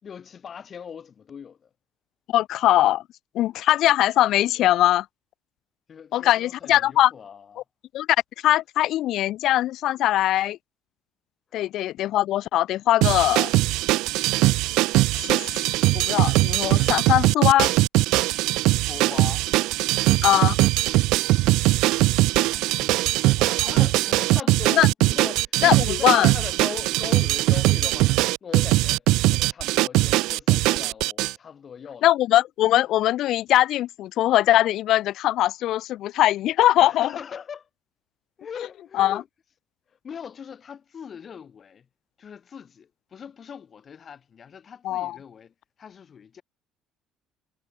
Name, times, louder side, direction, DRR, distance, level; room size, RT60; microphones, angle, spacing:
voice 1, 0.0-1.7 5.9-7.6 11.5-11.7 18.9-19.5 22.5-32.1 36.8-37.7 38.4-39.3 40.0-41.8 42.2-45.5 45.8-46.4, left 7 dB, 30° left, 2.9 m, -40 dB
voice 2, 2.3-3.0 3.3-5.1 6.1-7.1 7.9-8.1 8.4-10.6 11.5-13.5 15.3-15.4 15.9-17.7 20.2-20.6 24.7-24.9 25.6-26.3 32.0-37.1 38.9-39.2 44.8-45.2, left 14 dB, 55° left, 0.6 m, -21 dB
sound 1, 13.0-31.3, right 20 dB, 80° right, 0.4 m, -21 dB
cardioid pair, 165°, 0 cm